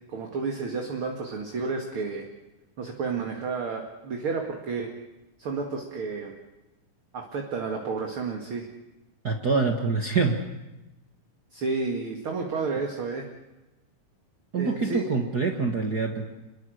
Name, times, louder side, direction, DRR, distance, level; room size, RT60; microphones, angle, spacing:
voice 1, 0.1-2.2 2.8-4.9 5.4-6.3 7.1-8.7 11.5-13.3 14.5-15.1, right 4 dB, 40° right, 2 dB, 2.3 m, -31 dB
voice 2, 9.2-10.4 14.5-16.2, right 4 dB, 85° right, 4 dB, 0.8 m, -25 dB
27.0 x 22.0 x 6.5 m, 1.0 s
omnidirectional pair, 4.3 m